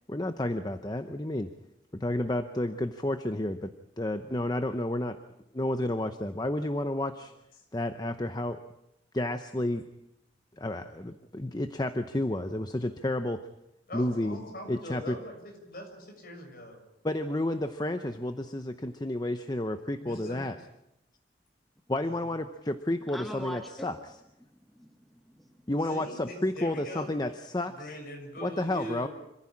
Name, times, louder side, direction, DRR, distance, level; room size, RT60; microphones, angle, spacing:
voice 1, 0.1-1.5 2.0-3.7 4.0-5.2 5.5-7.3 7.7-8.6 9.1-9.8 10.6-13.4 13.9-14.4 14.7-15.1 17.0-20.5 21.9-23.9 25.7-27.7 28.4-29.1, left 1 dB, 20° left, 8 dB, 0.8 m, -31 dB
voice 2, 13.9-16.8 20.0-20.4 22.0-22.3 25.8-27.1 27.7-29.1, equal, 50° left, 2 dB, 6.9 m, -42 dB
voice 3, 23.0-23.9 24.4-25.6, equal, ahead, 3 dB, 1.4 m, -43 dB
26.5 x 15.5 x 8.7 m, 0.87 s
head